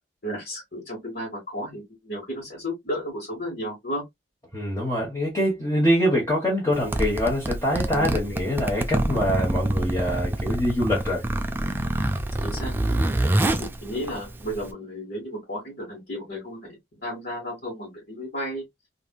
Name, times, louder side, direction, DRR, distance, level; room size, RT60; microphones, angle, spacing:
voice 1, 0.2-4.0 7.9-8.1 11.6-11.7 12.4-12.7 13.6-16.8 17.0-18.6, equal, 55° left, 1.7 m, -33 dB
voice 2, 4.5-11.2, equal, 15° left, 1.1 m, -24 dB
Zipper (clothing), 6.7-14.7, right 1 dB, 10° right, 0.3 m, -26 dB
3.2 x 2.6 x 2.2 m
head